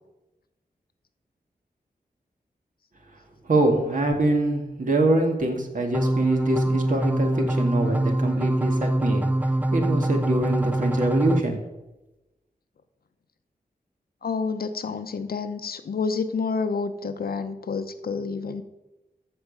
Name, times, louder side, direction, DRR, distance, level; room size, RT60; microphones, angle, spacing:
voice 1, 3.4-9.3 9.7-11.6, right 1 dB, 55° right, 3 dB, 2.0 m, -24 dB
sound 1, 5.9-11.4, right 1 dB, 10° right, 0.4 m, -24 dB
voice 2, 14.2-18.6, left 4 dB, 70° left, 9 dB, 0.8 m, -29 dB
13.0 x 7.0 x 5.3 m, 1.0 s
wide cardioid pair, 105°, 16 cm